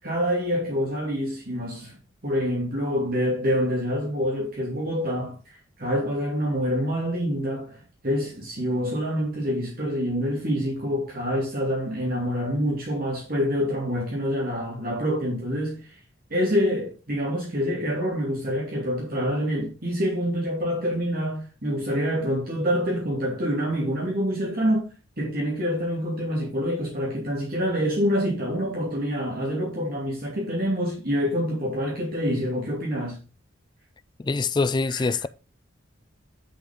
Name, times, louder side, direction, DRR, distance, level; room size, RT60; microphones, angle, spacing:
voice 1, 0.0-2.0 2.2-16.0 16.3-24.9 25.2-33.2 34.9-35.1, equal, 50° right, 2.5 m, -26 dB
voice 2, 34.2-35.3, left 4 dB, 20° left, 0.3 m, -24 dB
10.0 x 5.5 x 3.7 m
head